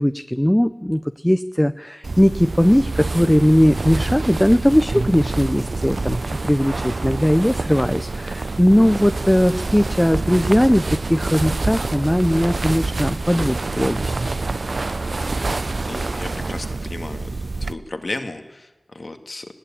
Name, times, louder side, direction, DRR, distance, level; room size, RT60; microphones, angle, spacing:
voice 1, 0.0-14.2, equal, 10° left, 10 dB, 0.7 m, -19 dB
sound 1, 2.0-17.7, right 3 dB, 85° right, 0.6 m, -26 dB
voice 2, 15.9-17.3 17.6-19.5, left 2 dB, 70° left, 6 dB, 2.1 m, -33 dB
20.0 x 17.5 x 8.8 m, 1.1 s
wide cardioid pair, 55°, 0 cm